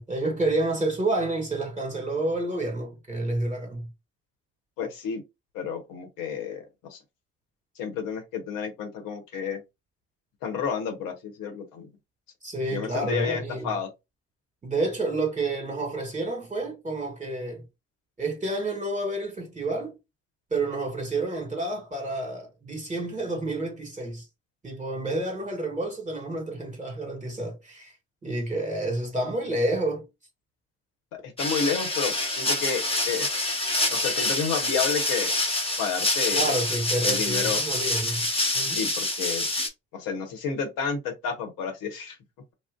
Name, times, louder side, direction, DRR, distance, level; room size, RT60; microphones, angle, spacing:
voice 1, 0.0-3.9 12.4-13.7 14.6-17.6 18.2-19.9 20.5-24.2 24.6-27.9 28.2-30.0 36.3-38.3 38.5-38.8, right 2 dB, 20° right, 1.3 m, -29 dB
voice 2, 4.8-5.2 5.5-6.6 6.9-7.0 7.8-9.6 10.4-11.9 12.7-13.9 31.2-33.3 33.9-35.3 35.8-36.5 37.0-37.6 38.7-39.5 39.9-42.2, left 6 dB, 70° left, 1.0 m, -30 dB
sound 1, 31.4-39.7, left 2 dB, 15° left, 1.0 m, -26 dB
2.5 x 2.0 x 3.6 m
hypercardioid pair, 45°, 34 cm